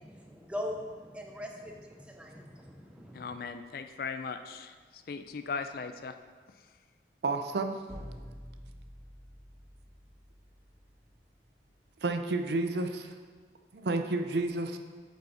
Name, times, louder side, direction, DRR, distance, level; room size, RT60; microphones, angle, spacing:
voice 1, 0.0-3.4, left 1 dB, 5° right, 2 dB, 0.7 m, -41 dB
voice 2, 3.1-6.1, left 5 dB, 55° left, 8 dB, 0.4 m, -38 dB
voice 3, 7.2-7.7 12.0-13.1 13.7-14.8, right 2 dB, 65° right, 6 dB, 0.5 m, -30 dB
sound 1, 7.9-11.7, equal, 40° right, 1.4 m, -49 dB
7.8 x 5.4 x 4.2 m, 1.5 s
head